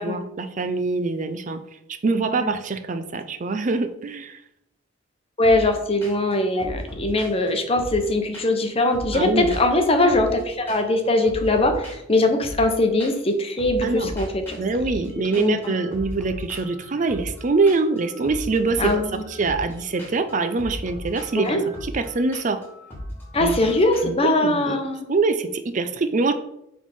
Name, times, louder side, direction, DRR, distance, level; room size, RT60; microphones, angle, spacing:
voice 1, 0.0-1.6 2.0-4.4 9.1-9.5 13.8-14.1 14.6-19.0 19.3-22.6 23.4-23.6 24.0-24.8 25.1-26.3, right 3 dB, 40° right, 8 dB, 0.5 m, -24 dB
voice 2, 2.0-2.6 5.4-14.6 15.4-15.7 18.8-19.2 21.4-21.6 23.3-25.0, left 2 dB, 30° left, 5 dB, 0.9 m, -21 dB
sound 1, 5.4-5.7 6.0-6.3 6.6-8.7 8.9-10.4 10.7-11.0 11.2-13.3 13.6-24.0, equal, 10° left, 2.5 m, -37 dB
7.6 x 3.7 x 5.4 m, 0.81 s
head